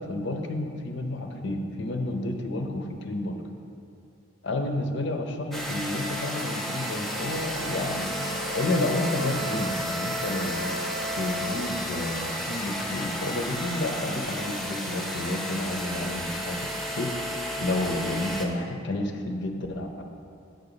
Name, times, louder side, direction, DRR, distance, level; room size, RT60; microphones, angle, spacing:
voice 1, 0.0-3.4 4.4-10.7 11.1-17.1 17.6-20.0, left 1 dB, 55° left, 4 dB, 0.6 m, -30 dB
sound 1, 5.5-18.5, equal, ahead, 0.5 m, -32 dB
7.8 x 4.0 x 6.8 m, 2.5 s
head